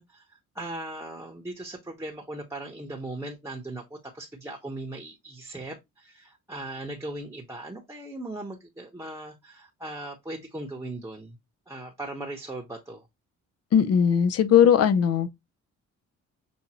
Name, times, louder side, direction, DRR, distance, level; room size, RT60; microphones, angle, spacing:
voice 1, 0.0-11.4 11.7-13.1, right 2 dB, 10° right, 0.9 m, -38 dB
voice 2, 13.7-15.3, left 8 dB, 55° left, 0.6 m, -19 dB
6.1 x 2.5 x 2.9 m
cardioid pair, 90°, 30 cm